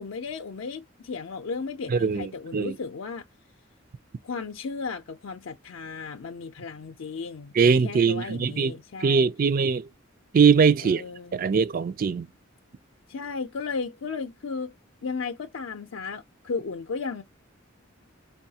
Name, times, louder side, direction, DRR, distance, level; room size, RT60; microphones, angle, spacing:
voice 1, 0.0-3.3 4.2-9.3 10.8-11.4 13.1-14.7 15.0-17.2, left 4 dB, 85° left, 0.5 m, -35 dB
voice 2, 1.9-2.7 7.6-8.7 9.0-9.9 10.3-11.0 11.3-12.3, right 5 dB, 45° right, 0.4 m, -21 dB
4.6 x 2.3 x 2.7 m
head